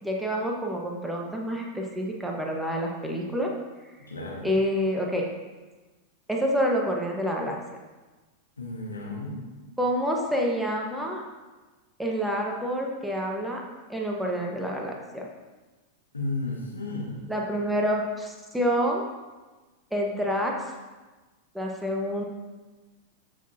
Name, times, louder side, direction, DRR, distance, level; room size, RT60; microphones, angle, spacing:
voice 1, 0.0-3.5 4.4-5.2 6.3-7.6 9.8-11.2 12.0-13.6 13.9-15.3 17.3-19.0 19.9-20.5 21.5-22.2, equal, 5° right, 0 dB, 1.3 m, -27 dB
voice 2, 4.1-4.5 8.6-9.5 16.1-17.3, left 2 dB, 80° left, -2 dB, 1.8 m, -33 dB
13.5 x 6.3 x 2.8 m, 1.2 s
figure-of-eight pair, 90°, 0 cm